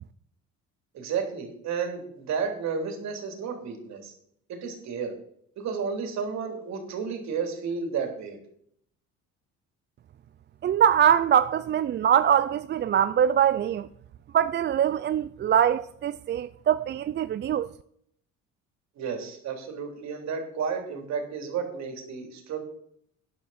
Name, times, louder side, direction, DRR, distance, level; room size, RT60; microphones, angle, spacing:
voice 1, 0.9-4.1 4.5-5.1 5.6-8.4 19.0-22.6, right 6 dB, 65° right, 3.4 m, -32 dB
voice 2, 10.6-13.9 14.3-17.7, right 9 dB, 35° right, 0.4 m, -23 dB
12.0 x 10.5 x 4.3 m
cardioid pair, 115°, 30 cm